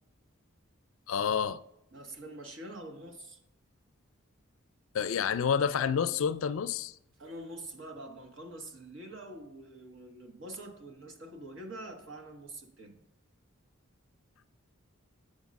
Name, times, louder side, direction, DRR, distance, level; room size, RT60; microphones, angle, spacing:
voice 1, 1.1-1.6 4.9-6.9, left 7 dB, 70° left, 0.4 m, -29 dB
voice 2, 1.9-3.4 7.2-12.9, right 1 dB, 60° right, 1.3 m, -45 dB
8.1 x 5.3 x 5.2 m
head